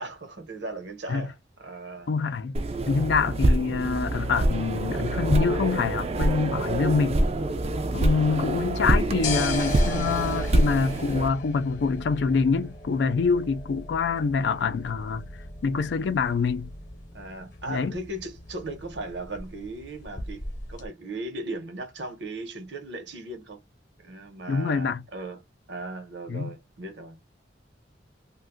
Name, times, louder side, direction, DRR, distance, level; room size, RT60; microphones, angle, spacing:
voice 1, 0.0-2.1 3.4-3.6 7.7-8.0 17.1-23.6 24.0-25.4 25.7-27.2, right 2 dB, 70° right, 0.9 m, -37 dB
voice 2, 2.1-2.6 2.9-7.2 7.9-15.3 15.6-16.7 17.7-18.0 24.5-25.0 26.3-26.6, left 5 dB, 65° left, 0.3 m, -25 dB
sound 1, 2.5-11.3, right 1 dB, 35° right, 0.4 m, -25 dB
sound 2, 8.9-20.9, left 2 dB, 45° left, 0.9 m, -38 dB
2.5 x 2.2 x 3.6 m
head